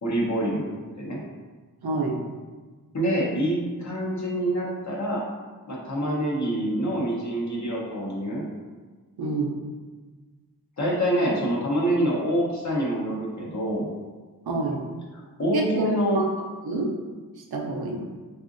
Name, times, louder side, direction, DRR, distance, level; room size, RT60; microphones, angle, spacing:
voice 1, 0.0-1.2 2.9-5.2 5.7-8.5 10.8-13.9 15.4-16.2, right 1 dB, 50° left, -4 dB, 0.8 m, -26 dB
voice 2, 1.8-2.2 9.2-9.5 14.5-14.8 15.5-15.9 16.1-16.3 16.6-16.9 17.5-18.0, right 3 dB, 90° right, -1 dB, 0.6 m, -27 dB
3.7 x 2.4 x 2.5 m, 1.4 s
wide cardioid pair, 95°, 37 cm